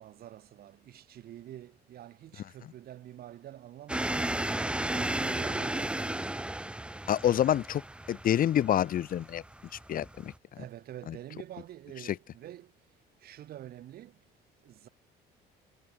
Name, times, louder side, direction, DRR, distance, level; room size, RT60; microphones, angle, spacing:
voice 1, 0.0-4.5 4.9-6.3 10.6-12.7 13.2-14.1 14.6-14.9, right 12 dB, 65° right, 4.7 m, -47 dB
sound 1, 3.9-10.4, right 1 dB, 5° right, 1.2 m, -34 dB
voice 2, 7.1-7.8 8.1-9.4 9.9-10.3 11.1-11.2, left 11 dB, 55° left, 2.2 m, -27 dB
cardioid pair, 110°, 17 cm